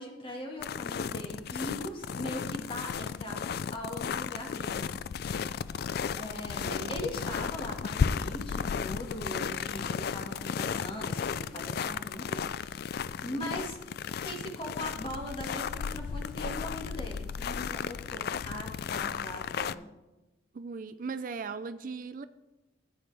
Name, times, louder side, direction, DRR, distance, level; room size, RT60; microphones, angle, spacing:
voice 1, 0.0-4.9 5.9-13.8 14.2-19.9, left 1 dB, 25° left, 1 dB, 1.8 m, -40 dB
sound 1, 0.6-19.8, left 6 dB, 50° left, 0.3 m, -34 dB
voice 2, 6.6-6.9 13.3-13.5 20.5-22.2, right 4 dB, 45° right, 12 dB, 0.4 m, -38 dB
14.5 x 9.2 x 3.4 m, 1.1 s
head